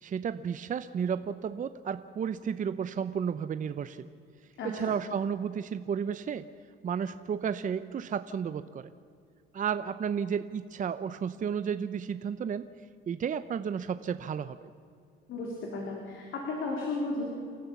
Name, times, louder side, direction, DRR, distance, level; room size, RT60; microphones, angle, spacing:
voice 1, 0.0-4.1 4.6-6.4 6.8-8.9 9.5-12.7 13.1-14.7, right 7 dB, 40° right, 11 dB, 0.7 m, -32 dB
voice 2, 15.3-17.2, left 3 dB, 70° left, -1 dB, 3.9 m, -34 dB
29.5 x 13.0 x 7.2 m, 2.4 s
cardioid pair, 115°, 21 cm